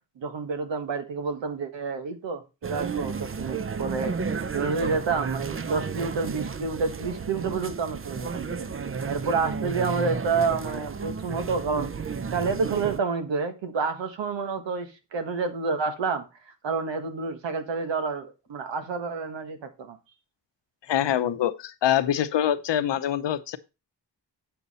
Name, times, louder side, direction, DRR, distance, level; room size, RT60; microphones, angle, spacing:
voice 1, 0.2-4.2 4.5-8.7 9.1-11.9 12.3-16.2 16.6-20.0, right 4 dB, 85° right, 1.4 m, -29 dB
sound 1, 2.6-13.0, right 5 dB, 30° right, 0.6 m, -32 dB
voice 2, 20.9-23.6, left 10 dB, 75° left, 0.8 m, -25 dB
8.4 x 7.0 x 4.1 m
cardioid pair, 60°, 43 cm